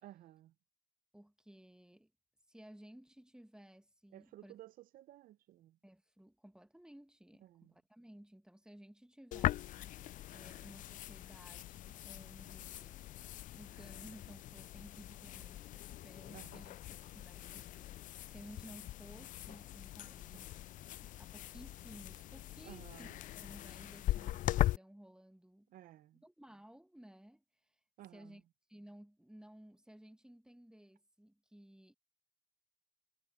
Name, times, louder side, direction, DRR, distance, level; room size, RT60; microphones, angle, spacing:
voice 1, 0.0-0.5 4.1-5.8 7.4-7.7 10.0-10.1 16.3-16.6 22.6-23.2 25.7-26.2 28.0-28.4, right 14 dB, 70° right, 0.7 m, -55 dB
voice 2, 1.1-2.1 2.5-4.6 5.8-10.0 10.3-13.0 13.5-17.9 18.2-20.5 21.0-23.1 23.3-25.7 26.2-27.7 28.1-28.4 28.7-31.9, right 1 dB, 5° right, 1.7 m, -57 dB
sound 1, 9.3-24.8, left 14 dB, 65° left, 0.4 m, -41 dB
sound 2, 15.2-23.1, right 5 dB, 40° right, 5.6 m, -78 dB
supercardioid pair, 55°, 15 cm